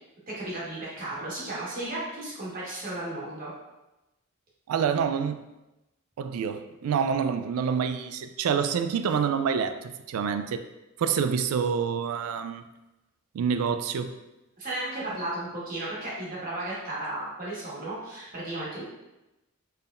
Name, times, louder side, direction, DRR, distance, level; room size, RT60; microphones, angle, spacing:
voice 1, 0.3-3.5 14.6-18.8, right 1 dB, 40° right, -6 dB, 1.3 m, -34 dB
voice 2, 4.7-5.4 6.2-10.7 11.0-12.6 13.3-14.2, right 6 dB, 90° right, 10 dB, 0.3 m, -27 dB
4.5 x 3.4 x 2.4 m, 0.98 s
head